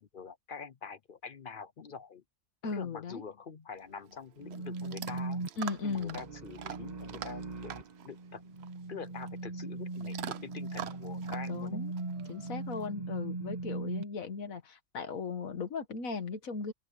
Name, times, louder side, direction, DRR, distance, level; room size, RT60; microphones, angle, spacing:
voice 1, 0.0-2.2 2.7-5.4 5.8-8.4 8.9-11.8, left 6 dB, 50° left, 0.7 m, -45 dB
voice 2, 2.6-3.2 5.6-6.2 11.5-11.9 12.3-16.7, left 4 dB, 80° left, 1.9 m, -37 dB
Chewing mastication / Dog, 3.7-12.9, right 10 dB, 55° right, 0.9 m, -46 dB
sound 1, 4.4-14.0, right 3 dB, 35° right, 1.3 m, -39 dB
open air
omnidirectional pair, 1.4 m